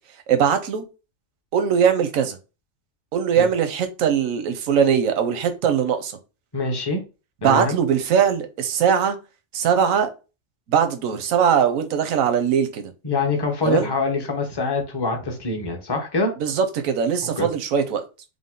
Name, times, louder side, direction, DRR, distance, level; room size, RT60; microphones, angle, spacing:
voice 1, 0.3-0.8 1.5-2.4 3.1-6.1 7.4-9.2 9.5-10.1 10.7-12.9 13.6-13.9 16.4-18.0, right 7 dB, 90° right, 1.1 m, -20 dB
voice 2, 6.5-7.0 7.4-7.8 13.0-16.3 17.4-17.5, left 3 dB, 20° left, 0.8 m, -24 dB
5.1 x 2.1 x 3.7 m
omnidirectional pair, 1.4 m